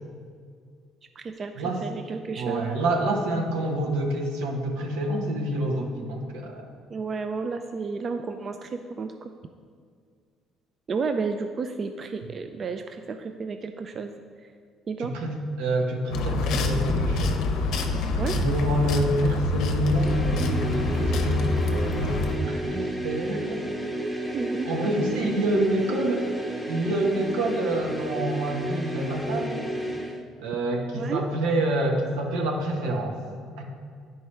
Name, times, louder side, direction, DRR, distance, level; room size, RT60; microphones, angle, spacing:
voice 1, 1.2-2.7 6.9-9.3 10.9-14.1 14.4-14.5 14.9-15.1 18.2-18.4 24.3-24.7 30.9-31.3, right 4 dB, 45° right, 7 dB, 0.4 m, -32 dB
voice 2, 2.4-6.7 15.0-17.4 17.6-17.8 18.3-23.6 24.7-26.3 26.7-29.7 30.4-33.2 33.6-33.7, right 1 dB, 85° right, 1 dB, 1.0 m, -27 dB
sound 1, 16.1-22.4, left 2 dB, 70° left, 0.6 m, -26 dB
sound 2, 19.9-30.2, right 1 dB, 10° right, 1.0 m, -32 dB
9.8 x 4.6 x 3.2 m, 2.1 s
supercardioid pair, 75°, 0 cm